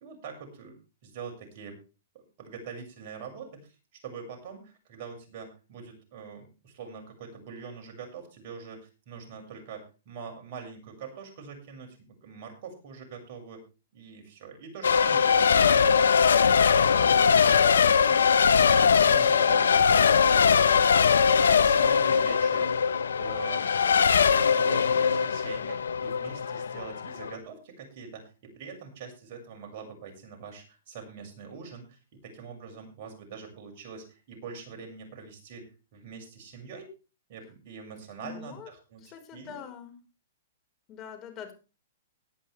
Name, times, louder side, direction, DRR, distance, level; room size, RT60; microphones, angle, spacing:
voice 1, 0.0-1.8 2.1-3.8 4.0-13.6 13.9-22.8 23.2-23.7 24.4-36.9 37.3-39.7, right 5 dB, 50° right, 3 dB, 6.5 m, -44 dB
Race car auto racing / Accelerating revving vroom / Mechanisms, 14.8-27.3, left 6 dB, 85° left, 1.0 m, -21 dB
voice 2, 38.2-38.7 39.0-40.0 40.9-41.5, left 7 dB, 30° left, 6 dB, 4.8 m, -43 dB
18.0 x 11.0 x 3.4 m, 0.32 s
hypercardioid pair, 135°, 0 cm